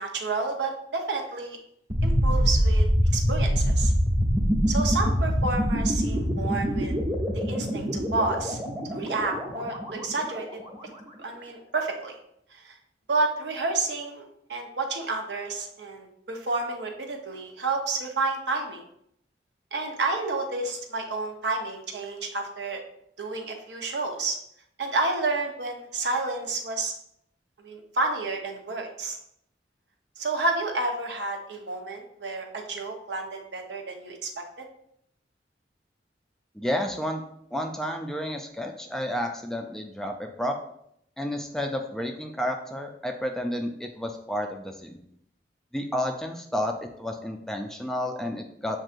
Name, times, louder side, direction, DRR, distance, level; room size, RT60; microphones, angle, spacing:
voice 1, 0.0-1.6 2.0-2.8 3.1-3.9 4.7-6.9 7.3-8.6 8.9-10.5 11.2-12.2 12.5-12.8 13.1-14.2 14.5-18.8 19.7-22.8 23.2-24.4 24.8-26.9 27.6-29.2 30.2-34.6, right 3 dB, 70° right, 3 dB, 0.8 m, -30 dB
sound 1, 1.9-10.8, equal, 35° right, 1.1 m, -25 dB
voice 2, 36.5-37.2 37.5-40.6 41.2-45.0 45.7-48.8, equal, 5° left, 3 dB, 0.3 m, -31 dB
7.4 x 2.6 x 2.5 m, 0.72 s
head